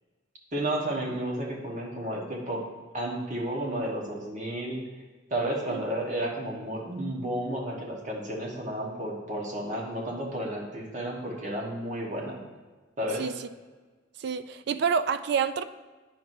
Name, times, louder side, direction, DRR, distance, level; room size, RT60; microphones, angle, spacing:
voice 1, 0.5-2.7 2.9-4.8 5.3-12.4 13.0-13.3, right 1 dB, 40° right, -2 dB, 1.2 m, -32 dB
voice 2, 14.2-15.6, right 6 dB, 55° right, 12 dB, 0.3 m, -27 dB
9.2 x 6.0 x 2.7 m, 1.3 s
head